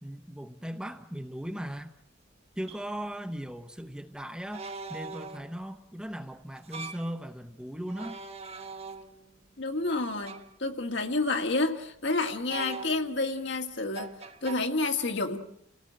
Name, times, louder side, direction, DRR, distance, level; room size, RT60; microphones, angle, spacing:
voice 1, 0.0-1.9 2.6-8.2, equal, 5° right, 0.9 m, -38 dB
sound 1, 1.7-1.8 2.7-2.8 4.5-5.6 6.6-7.1 7.9-9.3 10.2-10.6 12.5-13.3 13.9-14.6, right 4 dB, 30° right, 1.2 m, -41 dB
voice 2, 9.6-14.1 14.4-15.4, left 3 dB, 65° left, 2.0 m, -29 dB
29.5 x 17.5 x 7.6 m
head